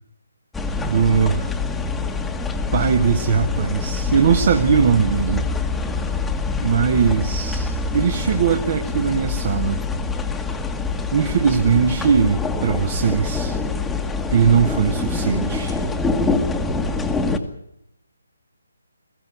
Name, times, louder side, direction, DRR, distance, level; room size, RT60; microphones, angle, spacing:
sound 1, 0.5-17.4, left 3 dB, 5° left, 1.4 m, -25 dB
voice 1, 0.9-1.5 2.7-5.4 6.6-9.8 11.1-13.6 14.3-15.8, right 6 dB, 40° right, 7 dB, 1.4 m, -20 dB
21.5 x 15.5 x 9.2 m, 0.80 s
figure-of-eight pair, 145°, 0 cm